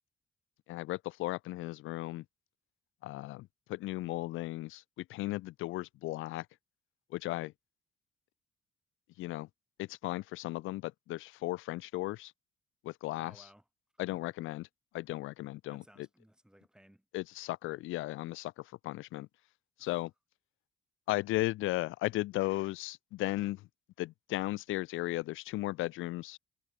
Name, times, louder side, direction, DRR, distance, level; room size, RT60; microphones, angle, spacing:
voice 1, 0.7-2.2 3.0-6.5 7.1-7.5 9.2-9.5 9.8-12.3 12.8-13.4 14.0-14.7 14.9-15.8 17.1-19.3 19.8-20.1 21.1-23.6 24.0-26.4, left 18 dB, 90° left, 0.7 m, -36 dB
voice 2, 13.1-13.6 13.9-14.2 15.7-17.1 19.8-20.1, equal, 5° right, 5.7 m, -60 dB
cardioid pair, 90°, 20 cm